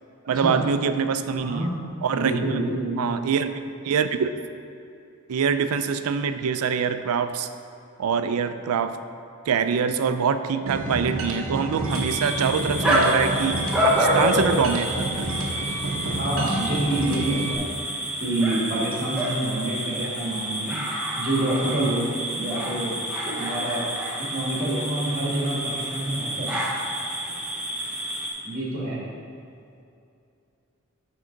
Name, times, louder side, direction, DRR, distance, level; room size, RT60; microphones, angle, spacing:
voice 1, 0.3-1.7 2.0-2.6 3.0-3.5 3.8-4.3 5.3-7.5 8.0-9.0 9.5-15.3, right 6 dB, 85° right, 10 dB, 0.4 m, -24 dB
voice 2, 1.4-1.8 2.1-3.0 16.0-17.7 18.2-20.8 21.1-22.9 23.4-23.8 24.2-26.6 28.4-29.0, right 1 dB, 40° right, -4 dB, 1.6 m, -27 dB
sound 1, 10.7-17.6, right 2 dB, 65° right, 0.8 m, -30 dB
sound 2, 11.9-28.3, equal, 5° right, 0.9 m, -28 dB
9.6 x 3.7 x 3.8 m, 2.6 s
head